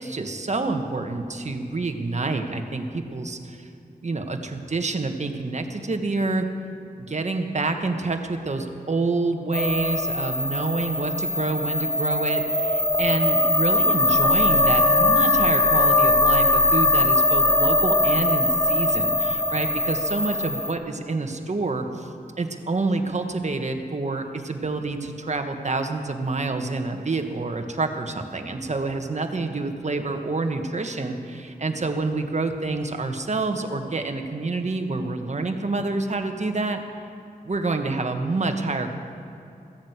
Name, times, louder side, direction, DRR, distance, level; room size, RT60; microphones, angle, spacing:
voice 1, 0.0-3.7 4.0-6.5 7.0-22.1 22.4-36.8 37.4-39.0, right 3 dB, 45° right, 5 dB, 1.5 m, -27 dB
sound 1, 9.5-20.7, left 1 dB, 25° left, 1.0 m, -21 dB
16.0 x 10.5 x 8.2 m, 2.7 s
wide cardioid pair, 70°, 16 cm